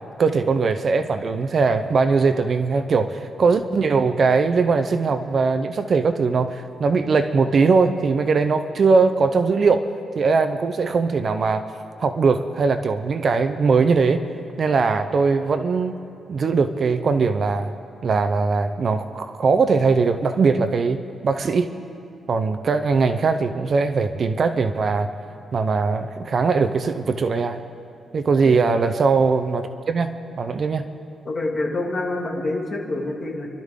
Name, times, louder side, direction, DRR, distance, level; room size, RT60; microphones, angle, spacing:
voice 1, 0.2-9.9 10.2-11.6 12.0-14.2 14.6-15.9 16.3-17.7 18.0-21.7 22.3-25.1 25.5-27.6 28.1-30.9, right 4 dB, 40° right, 9 dB, 0.6 m, -20 dB
voice 2, 31.2-33.5, left 2 dB, 30° left, -1 dB, 2.3 m, -27 dB
29.5 x 12.5 x 3.7 m, 2.5 s
cardioid pair, 145°, 0 cm